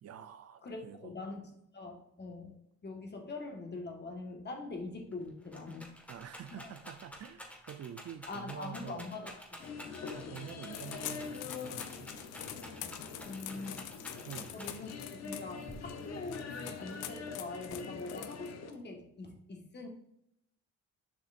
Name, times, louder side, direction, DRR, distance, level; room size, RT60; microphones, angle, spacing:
voice 1, 0.0-1.1 6.1-9.1 10.1-12.1 14.2-14.5, right 9 dB, 55° right, 11 dB, 0.5 m, -47 dB
voice 2, 0.6-2.5 2.8-5.9 6.5-6.7 8.3-9.3 9.7-9.9 13.3-13.9 14.5-19.9, left 3 dB, 35° left, 2 dB, 1.6 m, -43 dB
Rattle, 4.7-4.8 5.1-15.0 15.7-16.3, equal, 5° left, 1.6 m, -50 dB
sound 1, 9.6-18.7, left 5 dB, 60° left, 1.0 m, -44 dB
sound 2, 10.7-18.7, left 11 dB, 85° left, 0.7 m, -45 dB
7.2 x 5.4 x 2.6 m, 0.77 s
cardioid pair, 90°, 30 cm